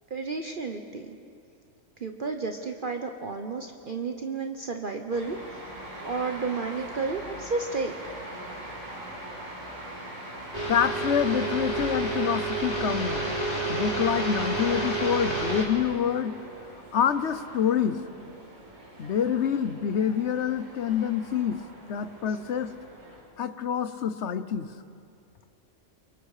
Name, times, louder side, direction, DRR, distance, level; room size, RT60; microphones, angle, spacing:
voice 1, 0.1-1.2 2.0-5.4 6.0-8.1 22.3-22.4, right 4 dB, 45° right, 4 dB, 1.1 m, -32 dB
sound 1, 5.1-23.2, right 1 dB, 85° right, 5.0 m, -43 dB
sound 2, 10.5-15.6, right 2 dB, 30° left, 3.6 m, -29 dB
voice 2, 10.7-13.3 13.7-16.4 16.9-18.0 19.0-21.6 21.9-22.7 23.4-24.7, left 8 dB, 65° left, 13 dB, 1.1 m, -26 dB
29.5 x 23.5 x 4.9 m, 2.4 s
omnidirectional pair, 1.3 m